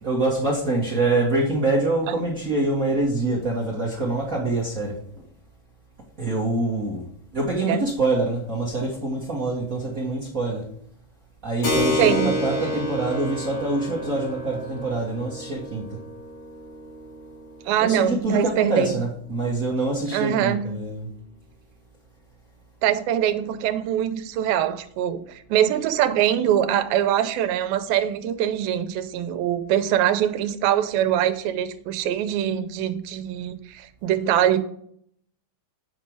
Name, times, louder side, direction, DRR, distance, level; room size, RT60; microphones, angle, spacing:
voice 1, 0.0-5.0 6.2-7.0 7.3-10.7 11.4-16.0 17.8-21.1, right 2 dB, 60° right, -5 dB, 0.8 m, -25 dB
Keyboard (musical), 11.6-19.8, equal, 45° left, 4.0 m, -31 dB
voice 2, 12.0-12.3 17.7-18.9 20.1-20.8 22.8-34.6, right 10 dB, 85° right, 11 dB, 2.5 m, -23 dB
8.5 x 5.4 x 4.6 m, 0.67 s
omnidirectional pair, 4.2 m